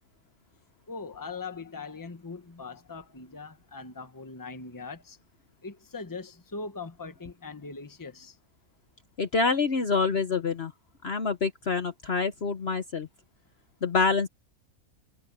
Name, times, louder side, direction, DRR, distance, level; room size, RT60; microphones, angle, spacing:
voice 1, 0.9-5.2 5.6-8.4, left 4 dB, 15° left, 1.2 m, -41 dB
voice 2, 9.2-10.7 11.0-13.1 13.8-14.3, left 4 dB, 45° left, 1.2 m, -26 dB
omnidirectional pair, 1.6 m